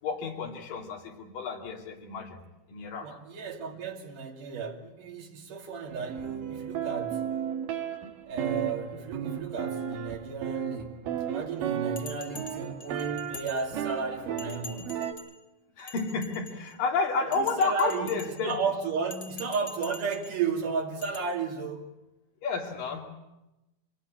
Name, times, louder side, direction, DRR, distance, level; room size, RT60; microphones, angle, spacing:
voice 1, 0.0-2.4 2.7-3.2 15.8-18.6 22.4-23.1, left 4 dB, 90° left, 4.3 m, -31 dB
voice 2, 3.0-7.3 8.3-11.0 11.3-15.0 17.1-18.1 18.4-22.0, right 5 dB, 75° right, 3.9 m, -33 dB
sound 1, 5.9-15.1, right 9 dB, 90° right, 3.3 m, -34 dB
Bell, 12.0-14.0 14.4-15.4 15.8-16.8 17.3-18.6 19.0-20.4 21.0-21.2, left 4 dB, 40° left, 2.3 m, -46 dB
26.0 x 19.5 x 8.9 m
omnidirectional pair, 3.8 m